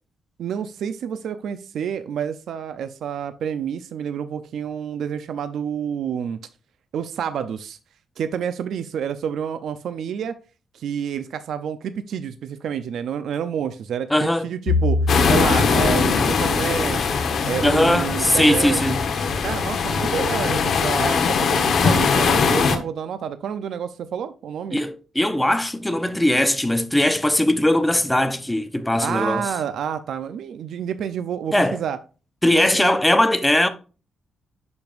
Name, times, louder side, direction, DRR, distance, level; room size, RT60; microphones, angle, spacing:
voice 1, 0.4-6.4 6.9-7.8 8.2-10.3 10.7-15.0 15.3-17.0 17.4-18.8 19.4-24.8 29.0-32.0 32.5-32.9, right 8 dB, 75° right, 0.5 m, -28 dB
voice 2, 14.1-14.4 17.6-19.0 24.7-29.4 31.5-31.8 32.4-33.7, left 1 dB, 5° left, 0.7 m, -20 dB
Bowed string instrument, 14.7-19.1, left 3 dB, 90° left, 1.3 m, -27 dB
sound 1, 15.1-22.8, left 5 dB, 60° left, 1.1 m, -21 dB
10.5 x 5.3 x 2.5 m
cardioid pair, 130°, 0 cm